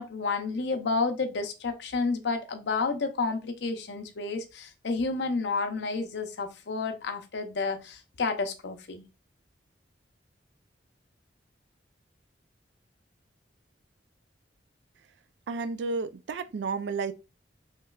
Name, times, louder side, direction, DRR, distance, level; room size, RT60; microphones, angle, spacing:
voice 1, 0.0-9.0, left 4 dB, 65° left, 0.5 m, -30 dB
voice 2, 15.5-17.1, right 4 dB, 65° right, 0.3 m, -31 dB
3.2 x 2.9 x 2.3 m
head